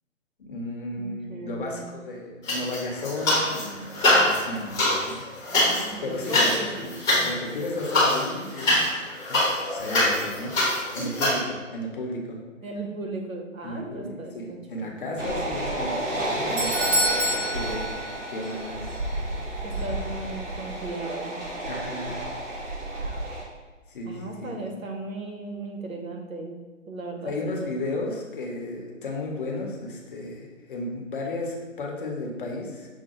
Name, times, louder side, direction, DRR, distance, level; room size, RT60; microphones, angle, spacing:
voice 1, 0.4-5.2 6.0-7.0 7.2-9.0 9.3-9.4 9.7-10.6 10.9-12.4 13.6-17.8 18.3-18.9 21.7-22.2 23.9-24.7 27.2-32.9, left 2 dB, 40° left, 0 dB, 0.7 m, -34 dB
voice 2, 1.0-2.2 5.5-6.9 11.0-11.1 12.6-14.9 19.6-21.4 24.0-26.6 26.9-28.0, right 2 dB, 90° right, 2 dB, 0.9 m, -37 dB
sound 1, 2.4-3.6 3.9-11.4, left 1 dB, 10° left, 0.8 m, -24 dB
sound 2, 15.2-23.4, right 1 dB, 60° right, 1.3 m, -31 dB
Doorbell, 16.1-18.6 18.9-19.0 19.7-19.8, equal, 25° right, 0.5 m, -28 dB
6.3 x 2.1 x 2.9 m, 1.3 s
figure-of-eight pair, 140°, 40 cm